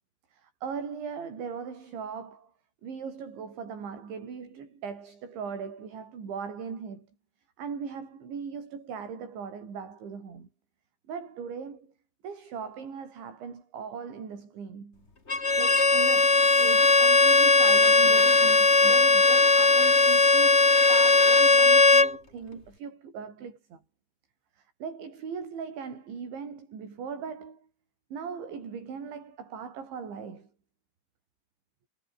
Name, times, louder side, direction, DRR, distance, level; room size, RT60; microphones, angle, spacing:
voice 1, 0.3-2.5 2.8-7.1 7.6-10.5 11.1-11.9 12.2-15.1 15.6-23.8 24.6-27.7 28.1-30.5, right 6 dB, 60° right, 8.2 m, -39 dB
Bowed string instrument, 15.3-22.1, left 3 dB, 15° left, 2.4 m, -19 dB
omnidirectional pair, 5.9 m